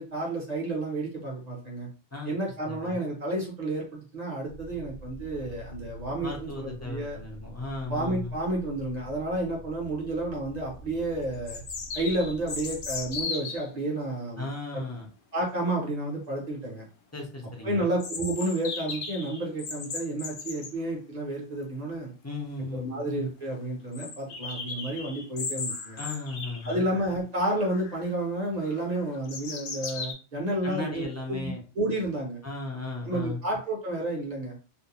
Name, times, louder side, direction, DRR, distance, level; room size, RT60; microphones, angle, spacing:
voice 1, 0.0-1.9 2.2-7.2 7.9-11.6 11.9-14.5 15.3-16.9 17.6-22.1 22.7-26.0 26.7-32.4 33.1-34.5, right 1 dB, 45° right, -1 dB, 0.7 m, -31 dB
voice 2, 2.7-3.0 6.2-8.3 14.4-15.1 17.1-17.9 22.2-22.9 26.0-26.8 30.6-31.6 32.4-33.4, left 3 dB, 25° left, -2 dB, 0.3 m, -36 dB
sound 1, 4.5-13.3, right 1 dB, 75° right, 0.8 m, -46 dB
sound 2, 10.5-10.6 11.5-13.7 18.0-20.7 22.4-22.5 22.7-22.8 23.2-23.3 23.9-27.2 27.6-28.1 28.6-30.1, left 4 dB, 60° left, 0.6 m, -37 dB
2.5 x 2.1 x 2.9 m, 0.36 s
omnidirectional pair, 1.2 m